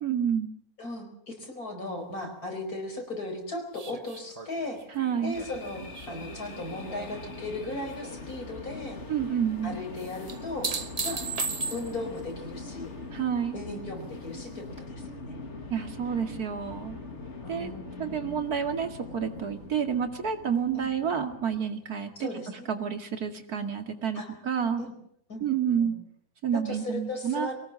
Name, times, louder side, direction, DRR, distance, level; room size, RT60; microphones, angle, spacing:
voice 1, 0.0-0.5 4.9-5.4 9.1-9.8 13.1-13.6 15.7-17.0 17.5-17.7 18.0-24.8 25.4-25.9 26.4-27.5, right 7 dB, 80° right, 6 dB, 2.7 m, -29 dB
voice 2, 0.8-4.8 5.2-9.0 9.6-10.7 11.0-11.3 11.7-13.0 13.5-15.4 17.4-18.4 20.7-20.9 22.2-22.7 24.2-24.3 24.8-24.9 25.3-25.5 25.8-25.9 26.5-27.6, left 2 dB, 75° left, 4 dB, 5.3 m, -37 dB
sound 1, 3.7-7.2 7.6-8.2 10.3-12.2 14.8-14.9, right 4 dB, 30° right, 0.9 m, -36 dB
sound 2, 5.3-21.6, left 3 dB, 50° left, 2.7 m, -42 dB
23.5 x 18.5 x 7.7 m, 0.71 s
omnidirectional pair, 1.6 m